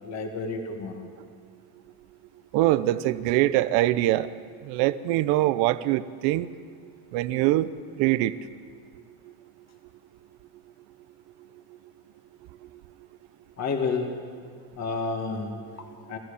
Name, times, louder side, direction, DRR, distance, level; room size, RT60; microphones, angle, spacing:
voice 1, 0.0-1.1 13.6-14.2 14.8-16.2, left 4 dB, 40° left, 3 dB, 2.2 m, -31 dB
voice 2, 2.5-4.3 4.6-6.5 7.1-7.7 8.0-8.3, right 15 dB, 80° right, 14 dB, 0.9 m, -23 dB
26.0 x 14.5 x 7.1 m, 2.1 s
cardioid pair, 140°, 42 cm